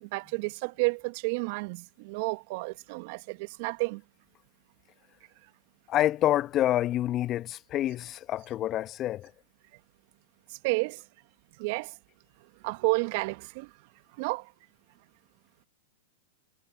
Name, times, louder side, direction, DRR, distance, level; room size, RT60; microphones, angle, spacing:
voice 1, 0.0-4.0 10.5-11.0 11.6-12.0 12.6-13.7 14.2-14.5, right 29 dB, 55° right, 1.8 m, -31 dB
voice 2, 5.9-9.3, left 13 dB, 35° left, 1.5 m, -27 dB
hypercardioid pair, 105°, 0 cm